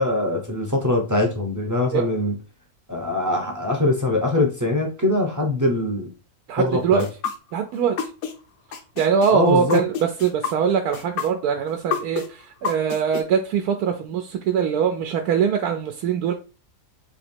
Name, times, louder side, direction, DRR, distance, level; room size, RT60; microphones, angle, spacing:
voice 1, 0.0-2.3 2.9-6.1 6.6-7.1 9.3-9.8, left 2 dB, 20° right, 0.5 m, -22 dB
voice 2, 6.5-7.0 7.5-8.0 9.0-16.3, right 7 dB, 85° right, 1.1 m, -22 dB
sound 1, 7.0-8.3 8.7-13.2, left 6 dB, 75° left, 1.2 m, -28 dB
3.5 x 2.9 x 4.3 m
omnidirectional pair, 1.6 m